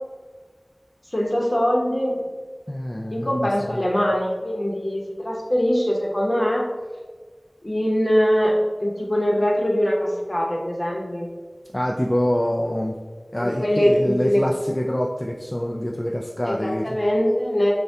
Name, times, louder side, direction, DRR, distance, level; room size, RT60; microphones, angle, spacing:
voice 1, 1.1-2.2 3.1-6.7 7.6-11.3 13.4-14.4 16.5-17.7, equal, 40° left, -1 dB, 0.9 m, -22 dB
voice 2, 2.7-3.9 11.7-13.0 13.3-17.0, equal, 25° left, -1 dB, 0.4 m, -26 dB
6.7 x 2.2 x 2.8 m, 1.4 s
wide cardioid pair, 45°, 0 cm